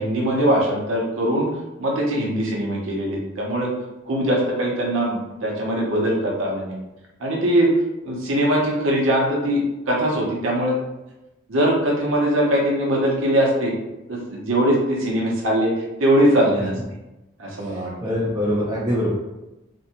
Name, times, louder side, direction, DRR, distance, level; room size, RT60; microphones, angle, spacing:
voice 1, 0.0-1.5 1.8-3.7 4.0-6.7 7.2-7.7 8.0-10.8 11.5-13.7 14.1-16.7 17.4-17.9, right 1 dB, 70° right, -2 dB, 0.7 m, -21 dB
voice 2, 17.6-19.1, equal, 15° right, -8 dB, 0.4 m, -24 dB
2.5 x 2.1 x 2.8 m, 0.98 s
head